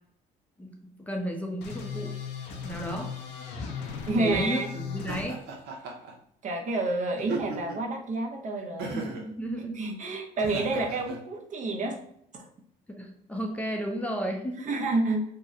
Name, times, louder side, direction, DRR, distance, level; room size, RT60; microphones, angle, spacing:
voice 1, 1.0-2.2 2.6-3.1 4.2-5.4 8.9-9.9 12.9-14.9, right 1 dB, 10° left, 1 dB, 0.5 m, -33 dB
sound 1, 1.6-5.3, left 6 dB, 80° left, 0.6 m, -37 dB
voice 2, 4.0-4.7 6.4-9.0 9.7-12.0 12.3-12.5 14.6-15.2, right 2 dB, 45° right, 1 dB, 0.7 m, -29 dB
Laughter, 5.1-6.1 7.2-7.9 8.8-9.3 10.4-11.2, right 4 dB, 80° right, 0.7 m, -37 dB
2.8 x 2.1 x 3.6 m, 0.70 s
cardioid pair, 110°, 17 cm